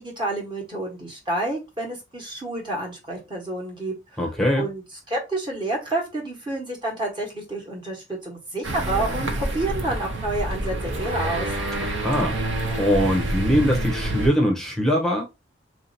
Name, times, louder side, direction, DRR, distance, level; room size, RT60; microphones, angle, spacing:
voice 1, 0.0-4.2 4.6-4.8 5.1-11.5, right 2 dB, 25° right, 1.3 m, -29 dB
voice 2, 4.2-4.6 11.8-12.4 12.8-15.2, equal, ahead, 0.8 m, -22 dB
sound 1, 8.6-14.3, right 1 dB, 75° right, 0.8 m, -27 dB
3.2 x 2.8 x 4.1 m
head